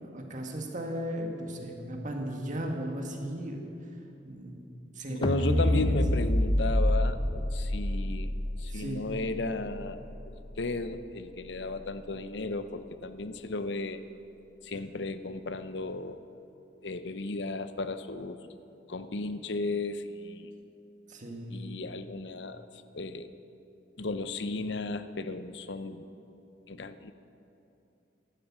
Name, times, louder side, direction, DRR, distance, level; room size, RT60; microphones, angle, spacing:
voice 1, 0.0-3.7 4.2-4.7 4.9-5.9 8.7-9.1 21.1-21.5, right 1 dB, 45° right, 2 dB, 2.0 m, -36 dB
voice 2, 5.1-8.3 8.6-10.1 10.6-14.0 14.6-16.2 16.8-18.4 18.9-20.5 21.5-22.7 22.9-23.3 24.0-26.1 26.7-27.1, left 2 dB, 70° left, 11 dB, 0.8 m, -34 dB
sound 1, 5.2-11.5, left 1 dB, 25° left, 0.7 m, -29 dB
14.5 x 12.5 x 7.5 m, 2.7 s
head